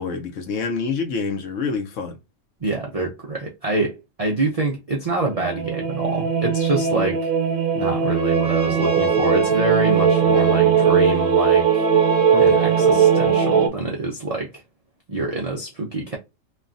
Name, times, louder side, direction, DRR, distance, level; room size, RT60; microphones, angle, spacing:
voice 1, 0.0-2.2 12.3-12.6, left 5 dB, 70° left, 0.9 m, -27 dB
voice 2, 2.6-7.3 7.7-11.9 12.4-14.5 15.1-16.2, right 2 dB, 55° right, 0.4 m, -26 dB
sound 1, 5.3-13.7, right 7 dB, 90° right, 1.1 m, -19 dB
Trumpet, 8.0-13.5, right 3 dB, 40° right, 0.9 m, -33 dB
3.2 x 2.2 x 2.4 m
omnidirectional pair, 1.5 m